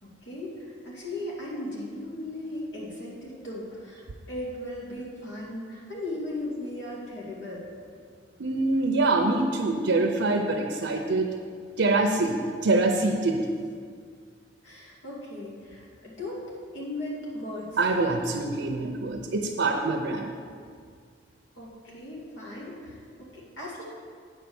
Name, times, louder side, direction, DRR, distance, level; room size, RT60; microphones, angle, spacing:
voice 1, 0.0-7.6 14.6-16.4 16.7-17.8 21.5-23.8, left 1 dB, 90° left, -5 dB, 2.5 m, -37 dB
voice 2, 8.4-11.3 11.8-12.4 12.6-13.4 17.8-20.3, right 2 dB, 90° right, 2 dB, 0.7 m, -25 dB
8.8 x 4.6 x 7.0 m, 2.1 s
head